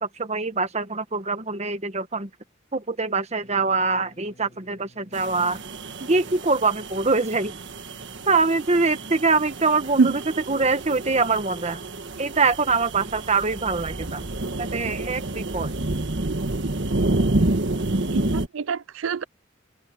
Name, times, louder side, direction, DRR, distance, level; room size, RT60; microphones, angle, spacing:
voice 1, 0.0-2.3 2.7-5.6 6.0-7.6 8.3-10.1 10.5-11.8 12.2-14.2 14.6-15.7, right 4 dB, 35° right, 1.4 m, -24 dB
sound 1, 3.4-13.6, left 1 dB, 40° left, 4.2 m, -56 dB
sound 2, 5.1-18.5, right 2 dB, 65° right, 1.5 m, -29 dB
voice 2, 18.1-19.2, right 5 dB, 90° right, 0.5 m, -25 dB
head